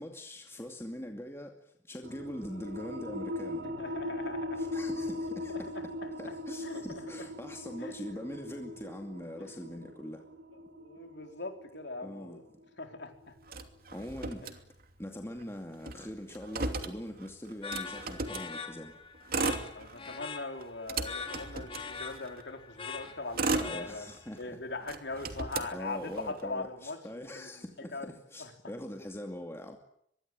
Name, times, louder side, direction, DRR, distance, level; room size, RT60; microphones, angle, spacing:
voice 1, 0.0-1.6 1.9-3.7 4.6-5.7 6.2-10.2 12.0-12.4 13.9-14.4 15.0-18.9 23.5-24.4 25.7-29.8, left 1 dB, 15° left, 3 dB, 2.5 m, -42 dB
sound 1, 2.0-13.3, left 1 dB, 70° right, 3.1 m, -40 dB
voice 2, 3.6-4.6 5.5-5.6 6.6-7.0 7.8-7.9 9.4-9.5 10.8-12.4 12.8-13.1 14.4-14.6 19.7-24.1 24.4-27.0 27.3-27.6 27.9-28.5, left 3 dB, 65° left, 5 dB, 4.3 m, -41 dB
Motor vehicle (road), 13.5-15.1 15.4-15.5 15.7-18.5 19.1-20.2 20.6-22.4 23.0-24.4 24.8-26.4, right 3 dB, 55° right, 2.8 m, -36 dB
sound 2, 17.6-24.3, left 5 dB, 30° left, 3.3 m, -43 dB
25.0 x 22.5 x 8.9 m, 0.72 s
head